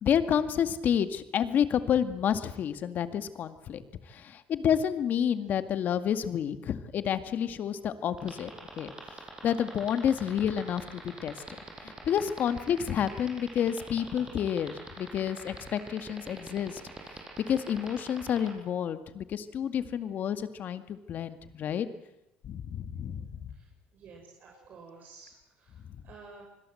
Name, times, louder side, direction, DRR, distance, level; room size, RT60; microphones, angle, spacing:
voice 1, 0.0-3.8 4.1-8.9 9.4-11.3 11.8-16.8 17.5-21.9 22.4-23.4, left 8 dB, 50° left, 10 dB, 2.1 m, -29 dB
sound 1, 8.2-18.5, right 3 dB, 20° right, 7.3 m, -43 dB
voice 2, 23.5-26.4, right 4 dB, 55° right, 0 dB, 6.5 m, -52 dB
26.5 x 21.0 x 7.9 m, 0.90 s
cardioid pair, 110°, 4 cm